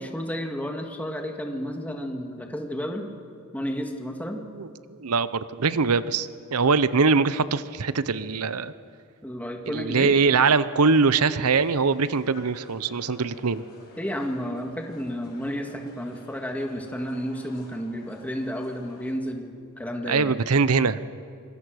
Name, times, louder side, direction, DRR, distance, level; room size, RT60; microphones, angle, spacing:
voice 1, 0.0-3.1 3.5-4.4 9.2-10.2 14.0-20.3, equal, 5° left, 3 dB, 1.8 m, -32 dB
voice 2, 5.0-8.7 9.7-13.6 20.0-21.1, right 4 dB, 85° right, 15 dB, 0.8 m, -22 dB
sound 1, 10.7-19.1, left 2 dB, 45° left, 6.4 m, -51 dB
26.0 x 21.5 x 6.4 m, 2.3 s
head